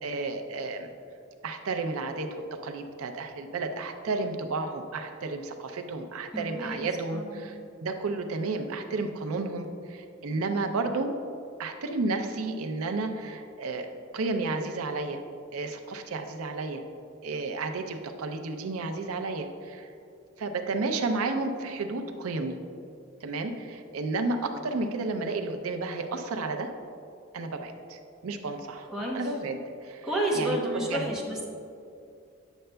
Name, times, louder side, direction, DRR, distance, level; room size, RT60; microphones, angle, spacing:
voice 1, 0.0-0.9 1.4-11.2 11.6-13.9 14.1-15.2 15.5-16.8 17.2-19.9 20.4-22.6 23.2-26.7 27.3-28.9 29.1-30.1 30.3-31.1, right 3 dB, 90° right, 6 dB, 0.5 m, -32 dB
voice 2, 6.3-7.4 28.9-29.2 30.0-31.4, right 1 dB, 5° right, -5 dB, 0.9 m, -30 dB
9.0 x 6.6 x 2.2 m, 2.5 s
head